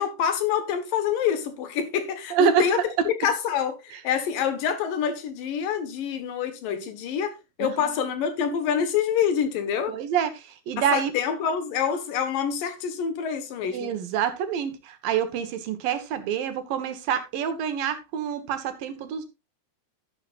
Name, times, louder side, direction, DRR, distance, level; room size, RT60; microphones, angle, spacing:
voice 1, 0.0-9.9 10.8-13.9, left 8 dB, 70° left, 3.1 m, -26 dB
voice 2, 2.3-2.7 7.6-7.9 9.9-10.3 10.7-11.1 13.7-19.3, right 8 dB, 75° right, 3.1 m, -26 dB
11.5 x 11.5 x 2.5 m
omnidirectional pair, 4.1 m